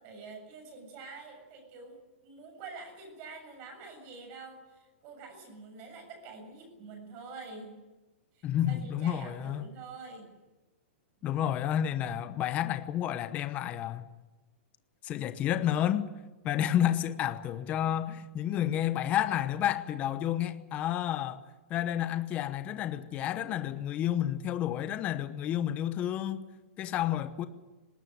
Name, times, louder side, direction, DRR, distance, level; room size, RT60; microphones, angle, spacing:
voice 1, 0.0-2.0 2.2-7.8 8.3-10.3, right 4 dB, 30° right, 7.4 m, -47 dB
voice 2, 8.4-9.7 11.2-14.0 15.0-16.1 16.4-21.4 21.7-26.5 26.8-27.5, left 11 dB, 20° left, 0.9 m, -30 dB
19.5 x 19.0 x 9.3 m
hypercardioid pair, 165°, 7 cm